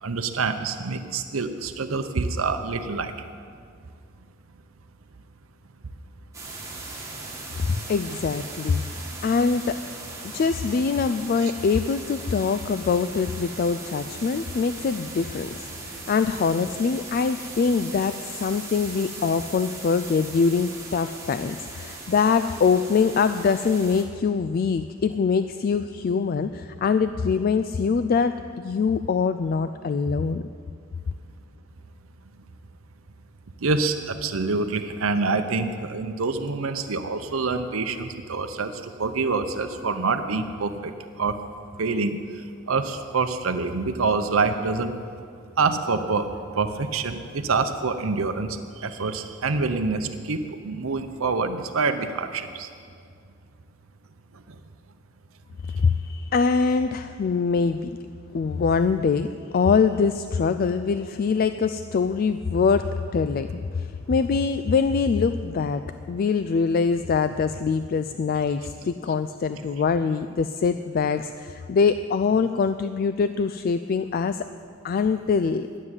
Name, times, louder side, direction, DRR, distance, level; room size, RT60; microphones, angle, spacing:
voice 1, 0.0-3.1 11.4-11.5 33.6-40.9 41.2-41.4 41.8-42.2 42.7-44.9 45.6-46.3 46.6-52.7, right 4 dB, 90° right, 7 dB, 0.8 m, -26 dB
sound 1, 6.3-24.0, right 3 dB, 15° right, 2.0 m, -39 dB
voice 2, 7.6-9.8 10.2-30.4 55.6-58.0 58.3-74.5 74.8-75.7, left 5 dB, 45° left, 11 dB, 0.3 m, -24 dB
12.0 x 7.5 x 9.6 m, 2.3 s
head